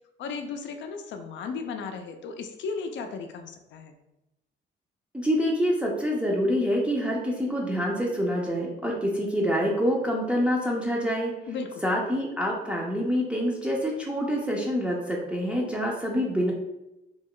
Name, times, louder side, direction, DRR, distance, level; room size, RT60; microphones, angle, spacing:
voice 1, 0.2-4.0 11.5-11.8, left 5 dB, 70° left, 5 dB, 0.4 m, -35 dB
voice 2, 5.1-11.3 11.8-16.5, equal, 5° right, -3 dB, 0.5 m, -26 dB
2.3 x 2.2 x 3.6 m, 0.92 s
cardioid pair, 90°, 20 cm